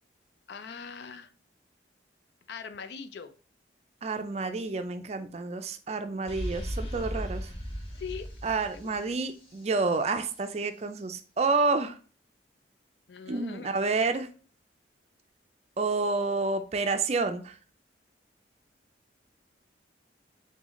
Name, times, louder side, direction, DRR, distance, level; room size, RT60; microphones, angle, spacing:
voice 1, 0.5-1.3 2.5-3.3 7.9-8.3 8.7-8.9 13.1-13.9, left 6 dB, 65° left, 0.4 m, -41 dB
voice 2, 4.0-7.5 8.4-11.9 13.3-14.3 15.8-17.5, right 3 dB, 35° right, 0.4 m, -29 dB
sound 1, 6.3-10.0, equal, 30° left, 1.1 m, -37 dB
4.0 x 3.8 x 3.0 m
head